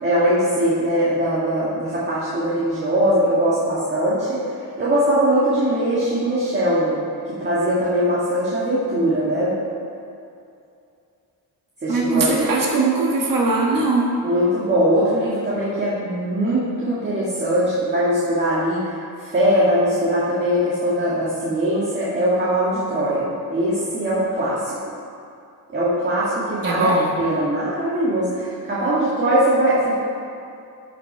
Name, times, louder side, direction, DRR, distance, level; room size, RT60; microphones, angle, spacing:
voice 1, 0.0-7.0 7.3-9.5 11.8-12.5 14.2-24.8 25.7-30.0, equal, 30° right, -8 dB, 1.9 m, -21 dB
voice 2, 11.9-14.1 26.6-27.1, right 3 dB, 65° right, -2 dB, 1.5 m, -20 dB
14.0 x 6.0 x 4.5 m, 2.5 s
wide cardioid pair, 145°, 36 cm